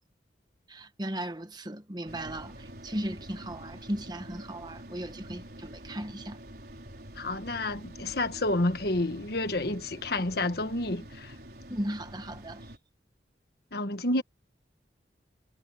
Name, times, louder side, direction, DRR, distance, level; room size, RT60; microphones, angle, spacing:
voice 1, 0.7-6.4 11.7-12.6, right 1 dB, 25° right, 1.4 m, -36 dB
sound 1, 2.1-12.8, right 1 dB, 55° right, 5.0 m, -47 dB
voice 2, 7.2-11.3 13.7-14.2, left 2 dB, 60° left, 1.5 m, -29 dB
head